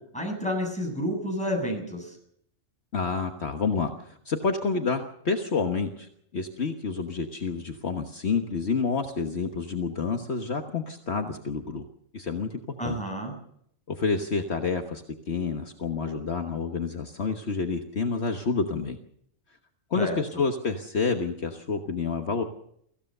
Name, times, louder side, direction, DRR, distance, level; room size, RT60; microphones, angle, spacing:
voice 1, 0.1-2.2 12.8-13.3 20.0-20.2, equal, 5° left, 1 dB, 7.9 m, -30 dB
voice 2, 2.9-11.8 12.1-13.0 13.9-19.0 19.9-22.4, left 4 dB, 60° left, 5 dB, 1.5 m, -29 dB
24.5 x 15.5 x 6.7 m, 0.71 s
omnidirectional pair, 1.3 m